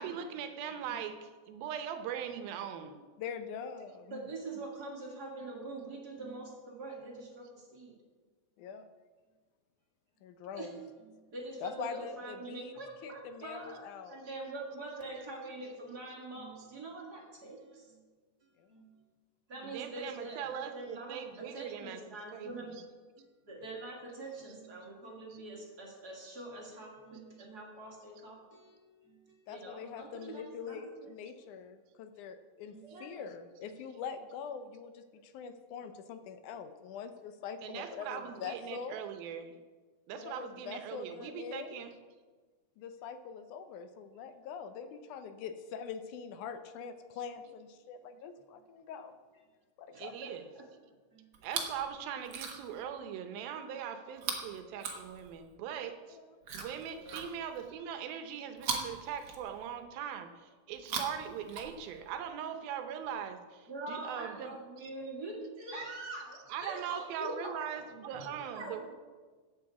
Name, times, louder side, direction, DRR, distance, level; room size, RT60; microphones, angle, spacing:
voice 1, 0.0-3.0 19.6-22.0 22.3-22.5 37.6-39.6 40.1-41.9 50.0-50.4 51.4-56.2 56.5-64.5 66.5-68.9, right 8 dB, 80° right, 8 dB, 2.6 m, -40 dB
voice 2, 3.2-4.2 8.6-8.9 10.2-10.7 11.6-12.7 13.0-14.2 18.6-18.9 29.5-39.0 40.1-41.8 42.8-49.1 49.8-50.2 56.1-56.3, left 6 dB, 75° left, 9 dB, 1.9 m, -43 dB
voice 3, 4.1-7.9 10.5-18.0 18.4-19.0 19.5-31.1 32.7-33.2 33.7-33.8 36.5-36.9 38.0-38.5 44.2-44.3 49.9-50.6 51.1-51.5 56.9-57.3 60.9-61.0 63.7-67.7 68.1-68.8, right 2 dB, 30° right, -2 dB, 2.2 m, -45 dB
Chewing mastication, 51.3-51.8 52.2-52.8 54.2-55.6 56.4-57.7 58.6-59.8 60.7-62.1 63.0-63.1, right 5 dB, 55° right, 1.7 m, -40 dB
14.0 x 8.9 x 4.8 m, 1.4 s
omnidirectional pair, 4.2 m